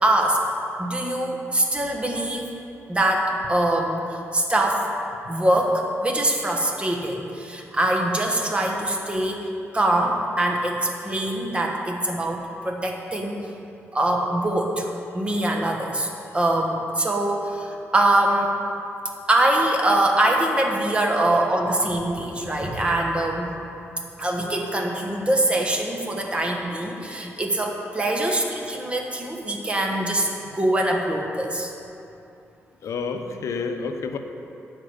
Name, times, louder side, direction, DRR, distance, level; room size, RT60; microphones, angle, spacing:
voice 1, 0.0-0.4 0.8-2.5 2.9-4.8 5.3-13.4 13.9-14.9 15.1-16.1 16.3-18.5 19.3-23.6 24.2-31.7, right 1 dB, 20° right, 1 dB, 1.3 m, -23 dB
voice 2, 32.8-34.2, left 5 dB, 75° left, 6 dB, 0.7 m, -29 dB
10.0 x 4.6 x 7.9 m, 2.7 s
cardioid pair, 95°, 5 cm